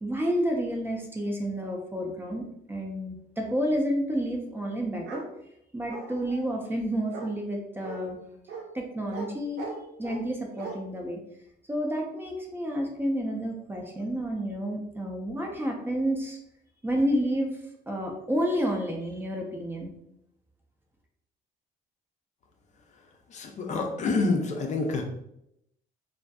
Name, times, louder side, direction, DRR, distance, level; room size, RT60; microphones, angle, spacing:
voice 1, 0.0-5.2 5.7-8.2 8.7-9.7 10.0-11.2 11.7-16.4 16.8-17.6 17.9-19.9, equal, 15° right, 1 dB, 0.4 m, -30 dB
Bark, 5.0-5.3 5.9-6.4 7.1-7.3 7.8-8.0 8.5-8.7 9.1-9.3 9.6-10.2 10.6-10.7, right 4 dB, 75° right, 0.5 m, -38 dB
voice 2, 23.3-25.0, left 3 dB, 45° left, 3 dB, 0.5 m, -27 dB
2.5 x 2.4 x 2.2 m, 0.78 s
cardioid pair, 110°, 17 cm